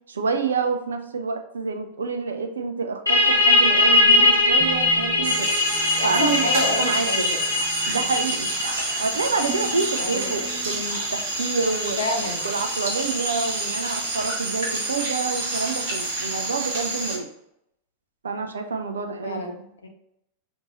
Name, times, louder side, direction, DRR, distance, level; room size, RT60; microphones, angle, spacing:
voice 1, 0.1-5.5 6.0-7.3 7.9-8.5 9.0-12.0 12.4-17.3 18.2-19.4, right 4 dB, 70° right, 6 dB, 0.4 m, -28 dB
sound 1, 3.1-14.4, left 2 dB, 90° right, 1.1 m, -22 dB
sound 2, 4.6-10.8, right 2 dB, 10° right, 0.5 m, -42 dB
sound 3, 5.2-17.2, right 2 dB, 50° right, 1.2 m, -29 dB
voice 2, 6.0-7.4 10.0-10.5 12.0-12.5 19.2-19.9, left 2 dB, 70° left, 2 dB, 0.7 m, -29 dB
5.2 x 2.6 x 3.0 m, 0.78 s
figure-of-eight pair, 90°, 0 cm